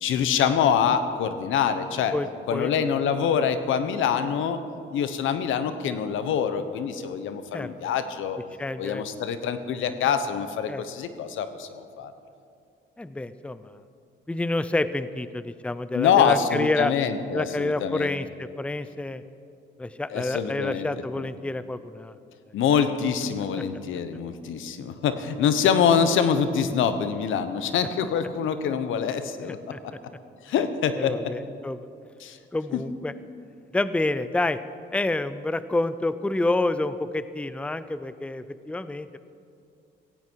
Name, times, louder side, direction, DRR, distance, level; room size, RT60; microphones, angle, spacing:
voice 1, 0.0-2.1 2.5-4.6 4.9-8.4 8.8-12.1 15.9-18.1 20.1-20.9 21.2-21.3 22.5-29.6 30.4-31.2 32.2-32.4 32.7-32.8, left 7 dB, 80° left, 10 dB, 1.1 m, -25 dB
voice 2, 2.1-2.7 7.5-7.7 8.6-9.0 10.0-10.1 10.7-10.8 13.0-13.8 14.3-16.9 17.3-19.2 19.8-22.2 29.5-29.8 30.9-31.9 32.5-33.1 33.7-34.6 34.9-39.2, left 2 dB, 5° left, 13 dB, 0.6 m, -28 dB
17.0 x 16.0 x 4.7 m, 2.5 s
cardioid pair, 90°, 20 cm